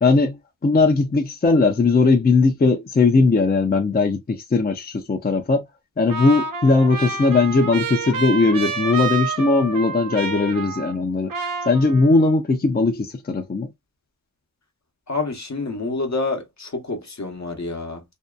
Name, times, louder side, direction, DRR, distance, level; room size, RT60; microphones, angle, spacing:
voice 1, 0.0-5.6 6.0-11.3 11.7-13.7, left 3 dB, 30° left, 0.4 m, -19 dB
Trumpet, 6.1-11.0 11.3-12.3, right 4 dB, 80° right, 0.6 m, -29 dB
voice 2, 15.1-18.0, left 3 dB, 60° left, 0.8 m, -28 dB
2.6 x 2.2 x 2.2 m
wide cardioid pair, 60°, 32 cm